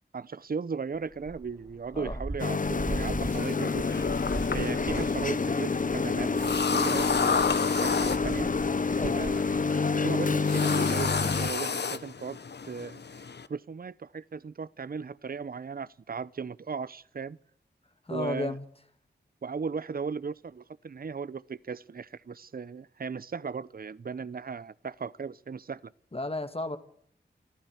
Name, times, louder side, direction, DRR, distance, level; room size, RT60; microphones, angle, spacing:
voice 1, 0.1-4.1 4.5-8.5 9.0-9.4 10.0-12.4 12.6-13.2 13.5-17.4 18.1-18.6 19.4-25.9, right 5 dB, 55° right, 0.7 m, -37 dB
sound 1, 1.1-9.6, right 2 dB, 20° right, 1.1 m, -39 dB
sound 2, 2.4-11.5, left 4 dB, 45° left, 1.0 m, -28 dB
sound 3, 3.3-13.5, left 5 dB, 70° left, 1.2 m, -32 dB
voice 2, 18.1-18.6 26.1-26.8, left 2 dB, 30° left, 2.4 m, -33 dB
23.0 x 14.5 x 8.1 m
cardioid pair, 55°, 18 cm